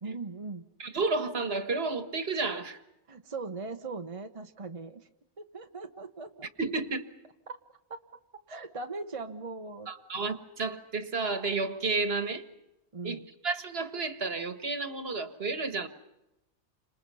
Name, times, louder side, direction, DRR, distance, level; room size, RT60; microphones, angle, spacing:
voice 1, 0.0-0.6 3.1-5.0 5.4-6.5 7.5-8.0 8.5-9.9 12.9-13.3, right 3 dB, 30° right, 4 dB, 1.1 m, -40 dB
voice 2, 0.8-2.8 6.6-7.0 9.9-12.4 13.0-13.2 13.4-15.9, right 3 dB, 60° right, 9 dB, 1.7 m, -31 dB
30.0 x 26.5 x 5.6 m, 0.93 s
omnidirectional pair, 1.2 m